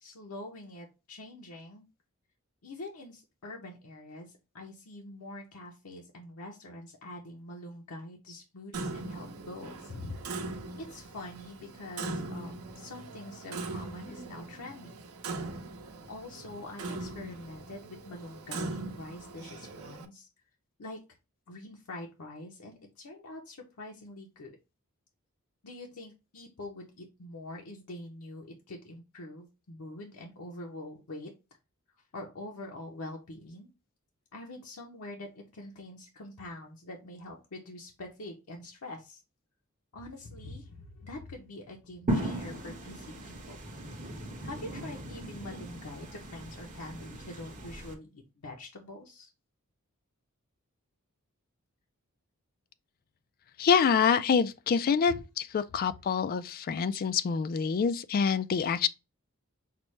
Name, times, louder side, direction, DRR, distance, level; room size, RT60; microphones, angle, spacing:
voice 1, 0.0-1.9 2.6-10.4 10.8-15.0 16.1-20.3 20.8-21.0 21.5-24.5 25.6-31.3 32.1-33.7 34.3-39.2 39.9-43.6 44.4-49.3 55.1-55.2, left 1 dB, 85° left, 0.7 m, -45 dB
Clock, 8.7-20.1, right 2 dB, 80° right, 0.8 m, -40 dB
sound 1, 42.1-47.9, right 1 dB, 35° right, 0.9 m, -37 dB
voice 2, 53.6-58.9, left 6 dB, 45° left, 0.3 m, -26 dB
5.8 x 2.1 x 3.1 m
head